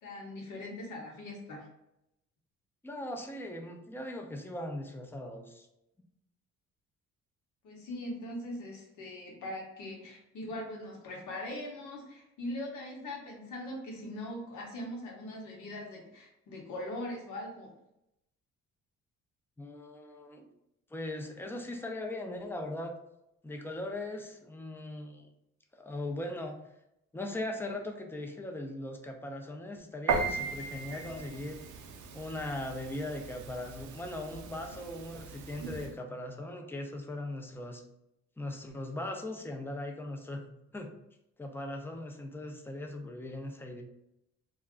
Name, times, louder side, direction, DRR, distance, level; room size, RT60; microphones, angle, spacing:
voice 1, 0.0-1.7 7.6-17.7, left 1 dB, 80° left, -1 dB, 1.0 m, -41 dB
voice 2, 2.8-5.7 19.6-20.4 20.9-22.9 23.4-25.3 25.7-26.6 27.1-31.6 32.1-37.8 38.4-40.5 40.7-40.9 41.4-43.8, left 1 dB, 10° left, 3 dB, 0.4 m, -39 dB
Piano, 30.1-35.9, right 5 dB, 70° right, 0.5 m, -37 dB
2.3 x 2.1 x 3.6 m, 0.84 s
cardioid pair, 90°, 30 cm